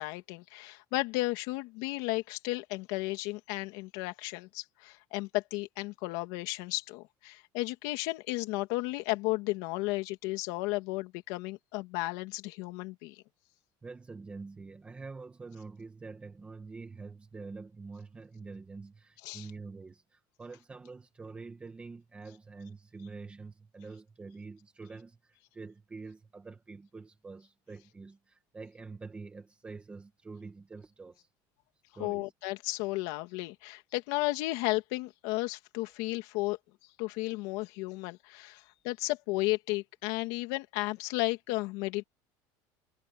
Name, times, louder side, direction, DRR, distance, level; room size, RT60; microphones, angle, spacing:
voice 1, 0.0-13.2 19.2-19.5 32.0-36.6 37.0-42.0, left 21 dB, 65° left, 2.6 m, -34 dB
voice 2, 13.8-31.3 31.9-32.3, right 4 dB, 10° right, 2.0 m, -46 dB
cardioid pair, 170°, 10 cm